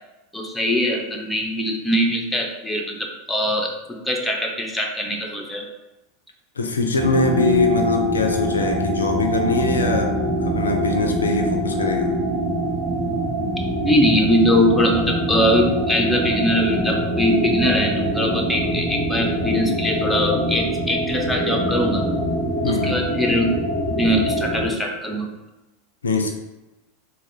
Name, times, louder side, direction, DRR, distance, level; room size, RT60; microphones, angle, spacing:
voice 1, 0.3-5.7 13.8-22.0 22.6-23.6 23.9-25.3, equal, 5° left, 1 dB, 0.7 m, -21 dB
voice 2, 6.6-12.1 22.6-23.0 26.0-26.3, left 3 dB, 80° left, 4 dB, 0.4 m, -22 dB
sound 1, 7.0-24.7, equal, 45° right, 0.8 m, -24 dB
3.7 x 2.2 x 3.3 m, 1.0 s
figure-of-eight pair, 85°, 0 cm